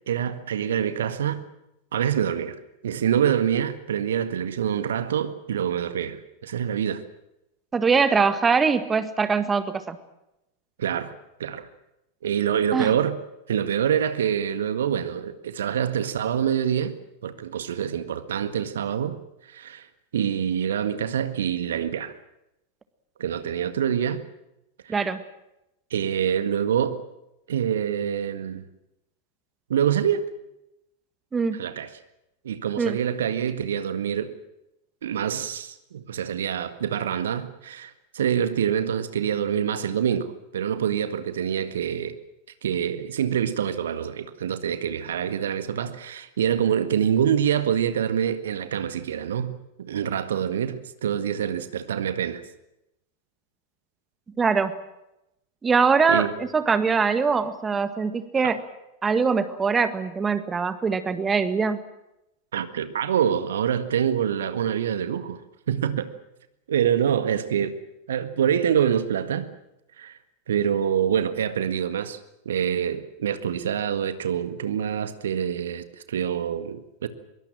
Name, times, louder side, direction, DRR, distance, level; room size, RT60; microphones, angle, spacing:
voice 1, 0.1-1.4 1.9-2.6 2.8-7.0 10.8-11.1 11.4-11.7 12.2-13.2 13.5-17.0 17.2-19.2 19.5-19.9 20.1-22.1 23.2-24.2 24.8-25.0 25.9-27.0 27.5-28.7 29.7-30.2 31.5-31.9 32.4-34.4 35.0-42.1 42.6-52.4 56.1-56.3 58.4-58.5 62.5-65.4 65.7-66.1 66.7-67.8 68.1-69.5 70.0-70.2 70.5-72.2 72.5-77.1, right 9 dB, 65° right, 1.8 m, -26 dB
voice 2, 7.7-10.0 12.7-12.9 24.9-25.2 31.3-31.6 32.8-33.0 54.4-54.7 55.6-58.6 59.0-61.8, right 5 dB, 15° right, 1.7 m, -22 dB
24.5 x 22.5 x 7.7 m
figure-of-eight pair, 90°, 0 cm